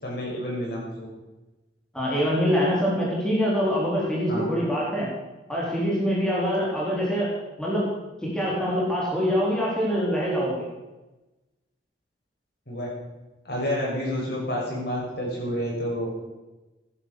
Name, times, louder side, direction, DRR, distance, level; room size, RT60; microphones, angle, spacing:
voice 1, 0.0-1.1 4.3-4.4 12.7-12.9 13.4-16.1, equal, 55° left, -3 dB, 6.1 m, -29 dB
voice 2, 1.9-5.1 5.5-7.3 7.6-7.9 8.2-10.5, equal, 5° left, -6 dB, 3.9 m, -24 dB
15.5 x 10.5 x 6.6 m, 1.1 s
head